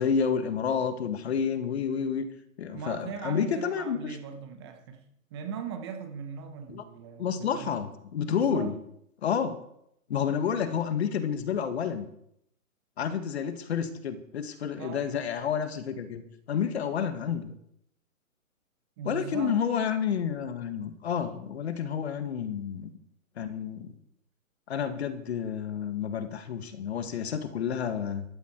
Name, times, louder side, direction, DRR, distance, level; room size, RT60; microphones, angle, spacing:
voice 1, 0.0-2.2 2.6-4.2 6.7-6.8 7.2-8.7 9.2-9.6 10.1-12.1 13.0-16.2 16.5-17.5 19.0-22.9 23.4-23.9 24.7-28.2, left 7 dB, 45° left, 9 dB, 1.8 m, -30 dB
voice 2, 2.7-5.0 5.3-7.8 8.2-8.8 14.8-15.1 19.0-19.6, right 6 dB, 20° right, 6 dB, 1.0 m, -39 dB
15.0 x 13.0 x 4.6 m, 0.74 s
hypercardioid pair, 165°, 43 cm